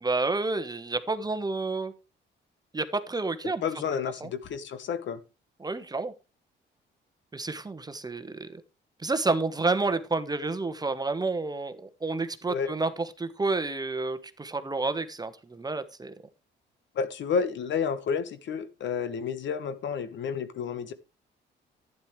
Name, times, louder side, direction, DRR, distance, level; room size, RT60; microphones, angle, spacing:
voice 1, 0.0-1.9 2.7-3.6 4.2-4.3 5.6-6.1 7.3-8.6 9.0-16.1, right 3 dB, 20° right, 10 dB, 1.1 m, -30 dB
voice 2, 3.4-5.2 12.5-12.7 16.9-20.9, left 6 dB, 70° left, 12 dB, 1.2 m, -30 dB
11.5 x 9.5 x 3.2 m, 0.29 s
cardioid pair, 90°, 20 cm